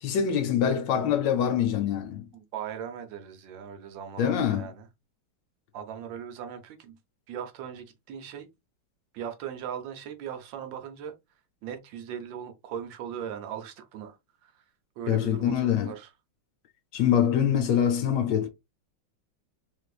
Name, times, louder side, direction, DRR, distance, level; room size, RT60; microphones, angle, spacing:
voice 1, 0.0-2.3 4.2-4.7 15.1-15.9 16.9-18.5, left 9 dB, 70° left, 1.2 m, -24 dB
voice 2, 2.3-4.9 5.7-7.0 7.3-8.5 9.1-11.2 11.6-14.2 14.4-14.6 15.0-16.1, right 8 dB, 75° right, 1.3 m, -39 dB
3.3 x 3.1 x 2.3 m
omnidirectional pair, 2.2 m